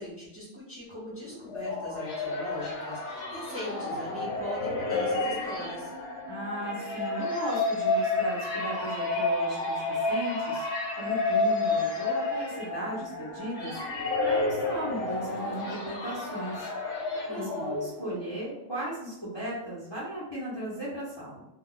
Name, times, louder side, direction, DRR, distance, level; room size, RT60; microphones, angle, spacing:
voice 1, 0.0-5.9 17.3-17.9, left 1 dB, 15° right, -8 dB, 0.8 m, -40 dB
sound 1, 1.2-18.2, left 3 dB, 65° left, 1.1 m, -31 dB
voice 2, 6.3-10.7 11.0-21.5, right 1 dB, 25° left, -9 dB, 0.8 m, -36 dB
2.4 x 2.3 x 3.8 m, 0.89 s
omnidirectional pair, 1.2 m